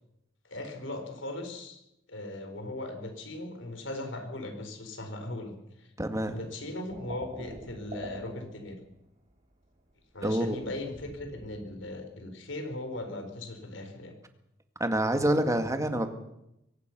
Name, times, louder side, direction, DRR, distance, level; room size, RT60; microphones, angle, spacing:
voice 1, 0.4-1.8 2.1-5.9 6.2-8.8 10.1-14.1, left 1 dB, 70° left, 6 dB, 4.8 m, -38 dB
voice 2, 6.0-6.4 10.2-10.6 14.8-16.1, right 1 dB, 15° right, 7 dB, 1.9 m, -27 dB
sound 1, 6.9-9.4 9.7-11.8, equal, 35° right, 5.3 m, -46 dB
23.0 x 18.0 x 6.2 m, 0.85 s
head